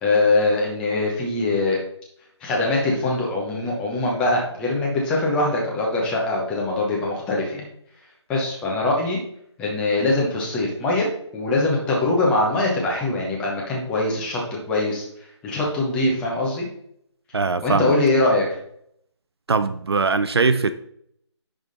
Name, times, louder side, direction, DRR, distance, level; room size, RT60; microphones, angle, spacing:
voice 1, 0.0-1.8 2.4-7.6 8.3-9.2 9.6-11.1 11.3-14.4 14.7-16.7 17.6-18.4, left 2 dB, 5° left, -3 dB, 0.9 m, -22 dB
voice 2, 17.3-17.9 19.5-20.7, right 4 dB, 60° right, 12 dB, 0.5 m, -21 dB
10.5 x 3.6 x 4.1 m, 0.70 s
figure-of-eight pair, 160°, 15 cm